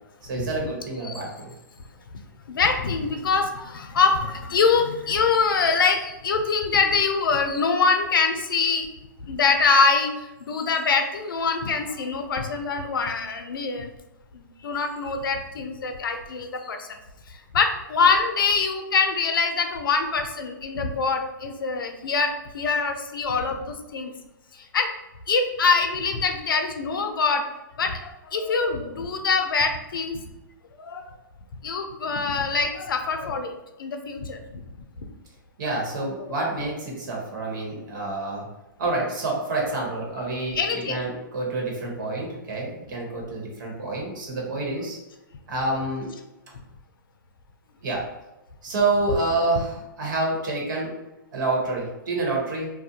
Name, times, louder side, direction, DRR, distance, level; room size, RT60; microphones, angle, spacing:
voice 1, 0.2-1.5 35.6-38.5 38.8-45.0 45.5-46.2 47.8-48.0 48.6-50.9 51.3-52.7, right 2 dB, 60° right, -1 dB, 1.1 m, -28 dB
voice 2, 2.5-8.9 9.2-13.9 14.3-16.9 17.3-24.1 24.5-24.9 25.3-27.5 27.8-30.2 30.8-31.1 31.6-34.6 35.6-35.8 40.5-41.1, left 4 dB, 80° left, 5 dB, 0.5 m, -24 dB
2.4 x 2.1 x 2.8 m, 0.99 s
hypercardioid pair, 135°, 11 cm